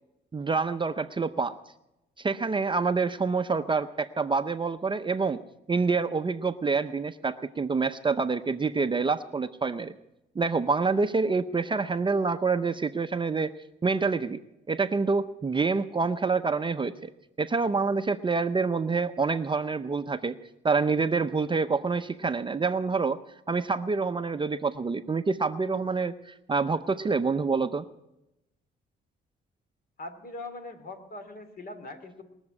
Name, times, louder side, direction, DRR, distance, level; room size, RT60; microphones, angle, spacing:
voice 1, 0.3-1.6 2.2-5.4 5.7-9.9 10.4-13.5 13.8-14.4 14.7-17.1 17.4-20.4 20.6-23.2 23.5-27.9, right 4 dB, 25° right, 10 dB, 0.6 m, -27 dB
voice 2, 30.0-32.2, left 2 dB, 50° left, 8 dB, 2.5 m, -41 dB
21.0 x 7.1 x 9.7 m, 0.90 s
cardioid pair, 90°, 20 cm